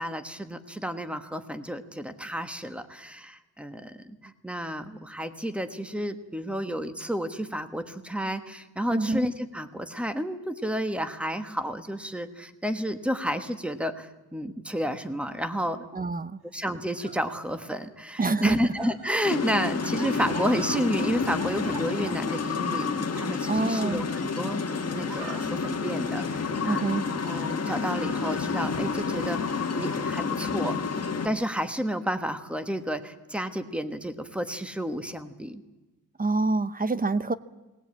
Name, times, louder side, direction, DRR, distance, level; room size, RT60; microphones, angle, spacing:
voice 1, 0.0-15.8 16.5-26.9 27.2-30.8 31.2-35.6, equal, 5° right, 9 dB, 1.2 m, -31 dB
voice 2, 8.9-9.3 15.9-16.4 18.2-18.6 23.5-24.1 26.6-27.1 36.2-37.3, right 3 dB, 25° right, 14 dB, 0.7 m, -26 dB
sound 1, 15.2-15.6 16.5-17.8 18.1-20.9 21.1-24.6 24.9-25.6 26.0-26.3 26.9-27.9 28.3-28.5 29.2-29.7 30.0-30.2 31.3-32.0 32.8-32.9, right 4 dB, 80° right, 1.7 m, -46 dB
sound 2, 19.2-31.3, left 5 dB, 45° left, 1.4 m, -29 dB
19.5 x 19.0 x 8.6 m, 1.1 s
wide cardioid pair, 160°, 36 cm